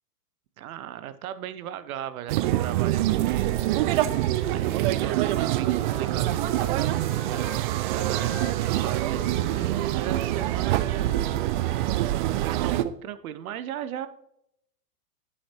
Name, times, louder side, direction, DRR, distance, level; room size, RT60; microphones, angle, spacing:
voice 1, 0.6-7.5 7.9-11.1 12.0-14.1, right 10 dB, 65° right, 13 dB, 0.8 m, -38 dB
sound 1, 2.3-12.8, right 15 dB, 35° right, 0.4 m, -25 dB
Wind instrument woodwind instrument, 3.2-7.6 7.9-12.8, left 7 dB, 50° left, 1.4 m, -44 dB
9.7 x 5.6 x 2.9 m, 0.76 s
hypercardioid pair, 105°, 47 cm